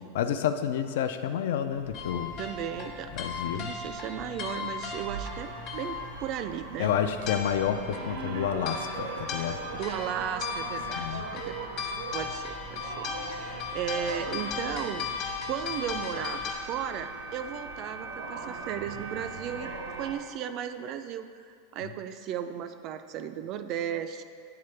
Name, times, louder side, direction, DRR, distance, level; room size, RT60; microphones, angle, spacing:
voice 1, 0.0-2.3 3.1-3.7 6.8-9.6 10.9-11.2 21.8-21.9, left 9 dB, 75° left, 9 dB, 0.4 m, -29 dB
sound 1, 1.7-20.2, right 4 dB, 90° right, 0.8 m, -41 dB
sound 2, 1.9-16.5, left 5 dB, 40° left, 1.0 m, -37 dB
voice 2, 2.4-3.1 3.5-6.9 9.7-11.6 11.9-15.1 15.5-19.7 20.0-24.2, right 9 dB, 40° right, 9 dB, 0.3 m, -35 dB
9.6 x 3.8 x 3.3 m, 2.3 s
supercardioid pair, 150°, 0 cm